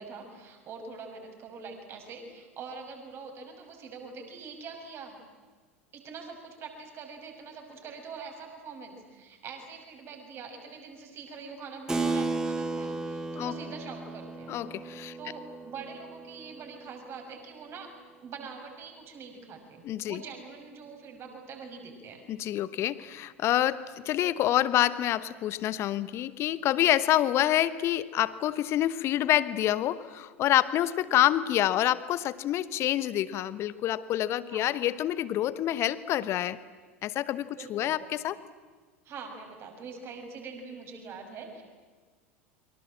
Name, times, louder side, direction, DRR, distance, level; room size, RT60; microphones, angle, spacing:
voice 1, 0.0-5.2 5.9-14.6 15.2-17.9 18.2-22.2 31.1-31.4 34.5-34.7 37.6-38.0 39.0-41.6, right 5 dB, 35° right, 4 dB, 5.9 m, -44 dB
Keyboard (musical), 11.9-17.9, right 3 dB, 10° right, 2.0 m, -35 dB
voice 2, 14.5-15.2 19.8-20.2 22.3-36.6 37.0-38.3, left 13 dB, 40° left, 17 dB, 1.0 m, -27 dB
29.5 x 24.0 x 7.6 m, 1.5 s
figure-of-eight pair, 80°, 7 cm